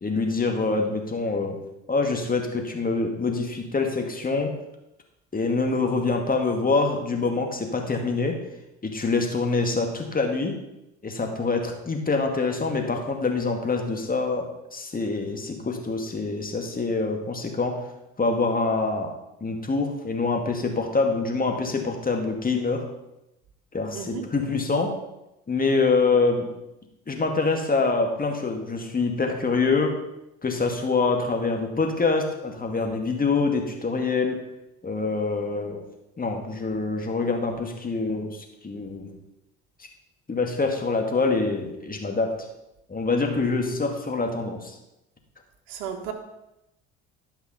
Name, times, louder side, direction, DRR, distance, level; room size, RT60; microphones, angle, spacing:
voice 1, 0.0-1.6 1.9-4.5 5.3-8.4 8.8-10.6 11.0-17.8 18.2-19.1 19.4-22.9 23.7-25.0 25.5-26.5 27.1-30.0 30.4-34.4 34.8-35.8 36.2-39.2 40.3-42.3 42.9-44.7, left 3 dB, 25° left, 3 dB, 2.2 m, -25 dB
voice 2, 23.9-24.2 45.7-46.1, right 8 dB, 70° right, 3 dB, 1.6 m, -34 dB
11.5 x 5.8 x 5.7 m, 0.89 s
hypercardioid pair, 60°, 33 cm